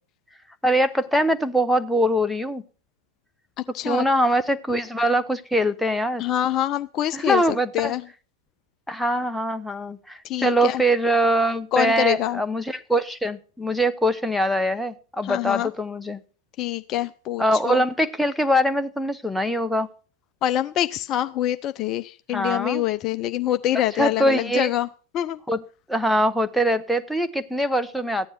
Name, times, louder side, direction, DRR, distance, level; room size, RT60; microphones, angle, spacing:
voice 1, 0.6-2.6 3.8-6.2 7.1-7.9 8.9-16.2 17.4-19.9 22.3-22.8 24.0-24.7 25.5-25.6 25.9-28.3, equal, ahead, 9 dB, 1.0 m, -23 dB
voice 2, 6.2-7.4 7.7-8.0 10.2-10.8 11.7-12.4 15.2-15.7 16.6-17.8 20.4-24.9 25.1-25.4, left 12 dB, 35° left, 11 dB, 0.6 m, -25 dB
15.0 x 10.0 x 6.0 m, 0.39 s
figure-of-eight pair, 90°, 0 cm